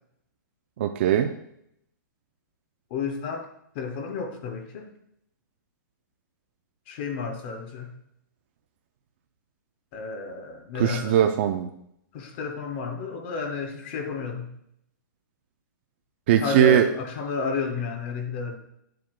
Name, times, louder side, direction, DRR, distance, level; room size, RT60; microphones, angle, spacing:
voice 1, 0.8-1.3 10.7-11.7 16.3-16.9, right 10 dB, 35° right, 5 dB, 0.4 m, -20 dB
voice 2, 2.9-3.5 3.7-4.9 6.9-7.9 9.9-11.2 12.1-14.5 16.4-18.6, left 5 dB, 30° left, 5 dB, 0.7 m, -31 dB
10.0 x 7.6 x 2.2 m, 0.74 s
hypercardioid pair, 170°, 11 cm